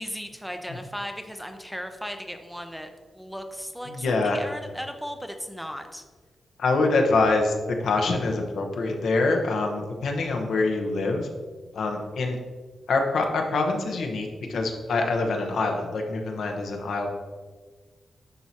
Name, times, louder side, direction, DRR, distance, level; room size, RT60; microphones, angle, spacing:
voice 1, 0.0-2.9 3.1-6.0, equal, ahead, 5 dB, 0.4 m, -36 dB
voice 2, 3.9-4.4 6.6-11.3 11.7-12.4 12.9-17.1, left 3 dB, 80° left, 2 dB, 0.9 m, -25 dB
10.5 x 4.5 x 2.8 m, 1.5 s
wide cardioid pair, 165°, 0 cm